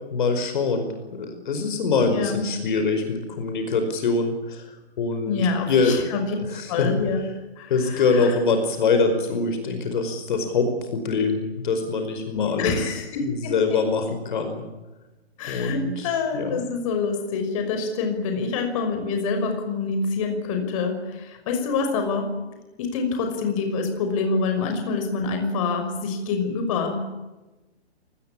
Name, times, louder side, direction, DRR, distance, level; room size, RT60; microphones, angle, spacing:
voice 1, 0.1-0.9 1.2-5.4 5.7-6.0 6.5-6.9 7.7-14.6 15.5-16.6, left 4 dB, 50° left, 7 dB, 5.1 m, -24 dB
voice 2, 2.0-2.4 5.3-6.2 6.7-7.3 7.6-8.3 12.3-13.8 15.4-22.3 22.8-27.0, left 4 dB, 30° left, 5 dB, 5.7 m, -26 dB
27.5 x 20.0 x 8.7 m, 1.1 s
hypercardioid pair, 160°, 32 cm